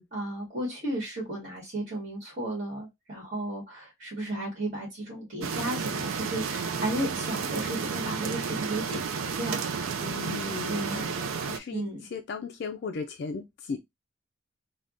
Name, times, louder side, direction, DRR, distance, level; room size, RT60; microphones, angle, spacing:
voice 1, 0.1-9.6 10.7-11.1 11.7-12.1, right 1 dB, 40° right, 1.6 m, -34 dB
sound 1, 5.4-11.6, right 5 dB, 85° right, 0.5 m, -32 dB
voice 2, 10.0-11.8 12.1-13.8, left 4 dB, 55° left, 0.3 m, -36 dB
3.4 x 2.2 x 2.5 m
head